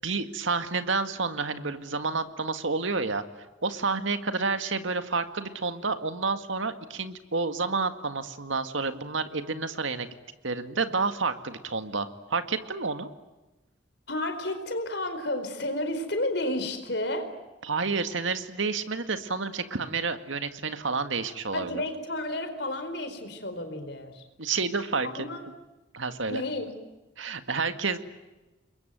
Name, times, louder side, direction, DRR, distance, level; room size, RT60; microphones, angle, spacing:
voice 1, 0.0-3.2 3.6-10.1 10.4-13.1 17.6-21.8 24.4-25.3 25.9-26.4 27.2-28.0, right 4 dB, 85° right, 9 dB, 1.9 m, -29 dB
voice 2, 14.1-17.3 21.5-24.2 25.0-25.4 26.3-26.7, left 1 dB, 60° left, 7 dB, 4.5 m, -31 dB
28.0 x 22.0 x 9.3 m, 1.1 s
head